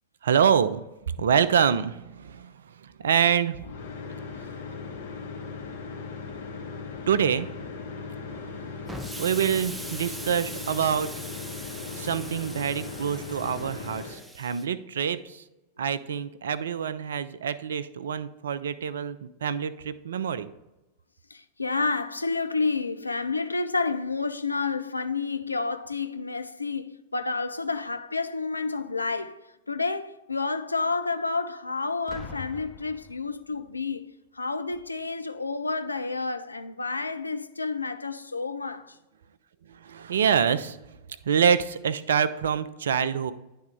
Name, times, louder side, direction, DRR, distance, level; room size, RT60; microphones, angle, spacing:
voice 1, 0.2-0.9 1.2-3.7 7.1-7.5 8.3-8.9 9.2-11.1 12.0-15.4 15.8-20.5 39.7-40.8 41.2-43.3, right 8 dB, 65° right, 0.4 m, -26 dB
sound 1, 3.5-14.2, left 4 dB, 60° left, 1.5 m, -38 dB
Explosion, 8.9-14.7, right 1 dB, 5° right, 0.5 m, -41 dB
voice 2, 21.3-29.4 29.7-39.0, left 4 dB, 80° left, 0.4 m, -30 dB
Boom, 32.1-33.8 34.7-35.0, left 4 dB, 20° left, 1.0 m, -44 dB
10.5 x 3.5 x 3.5 m
figure-of-eight pair, 90°, 0 cm